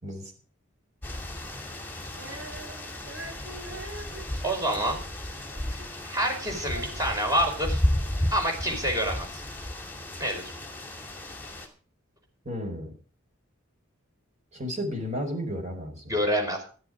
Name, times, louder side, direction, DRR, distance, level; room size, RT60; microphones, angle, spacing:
voice 1, 0.0-0.3 12.4-12.9 14.5-16.2, equal, 35° right, 3 dB, 4.6 m, -33 dB
sound 1, 1.0-11.7, left 1 dB, 10° left, 2.5 m, -33 dB
Female singing, 2.1-6.0 6.2-8.3, right 1 dB, 75° right, 7.8 m, -45 dB
voice 2, 4.4-5.0 5.7-5.8 6.0-7.8 8.3-9.4 10.2-10.5 16.1-16.6, equal, 15° right, 1 dB, 4.9 m, -27 dB
14.0 x 10.5 x 5.0 m, 0.39 s
head